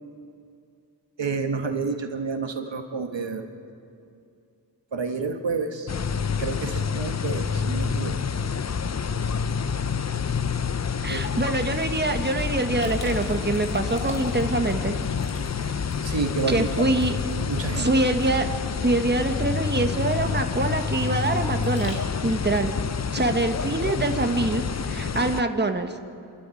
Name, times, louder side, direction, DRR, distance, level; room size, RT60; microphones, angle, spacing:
voice 1, 1.2-3.4 4.9-5.9 6.4-8.2 11.1-11.3 16.0-16.8 17.5-17.9, right 4 dB, 85° right, 5 dB, 1.6 m, -29 dB
sound 1, 5.9-25.4, left 6 dB, 40° left, 0.5 m, -28 dB
voice 2, 11.0-14.9 15.6-15.8 16.5-17.2 17.8-18.5 18.8-22.7 23.1-25.9, right 2 dB, 25° right, 6 dB, 1.4 m, -25 dB
Liquid, 12.8-22.4, left 1 dB, 75° left, 3.6 m, -44 dB
27.5 x 13.0 x 9.1 m, 2.5 s
wide cardioid pair, 70°, 43 cm